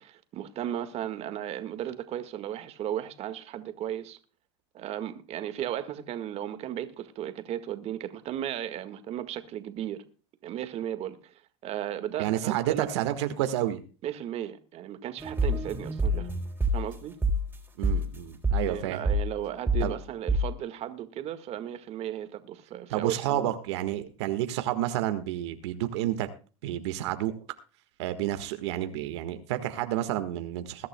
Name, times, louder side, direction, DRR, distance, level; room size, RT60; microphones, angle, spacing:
voice 1, 0.0-4.2 4.7-10.0 10.4-11.3 11.6-12.9 14.0-16.3 16.7-17.2 18.7-23.6, right 11 dB, 50° right, 1.7 m, -35 dB
voice 2, 12.2-13.8 17.8-19.0 19.8-19.9 22.9-26.3 26.6-27.3 28.0-30.9, right 13 dB, 80° right, 1.6 m, -30 dB
sound 1, 15.2-17.0 17.2-17.6 17.8-18.2 18.4-18.8 19.1-19.4 19.7-20.0 20.3-20.6, right 1 dB, 15° right, 3.5 m, -27 dB
21.5 x 11.5 x 2.3 m
supercardioid pair, 100°, 14 cm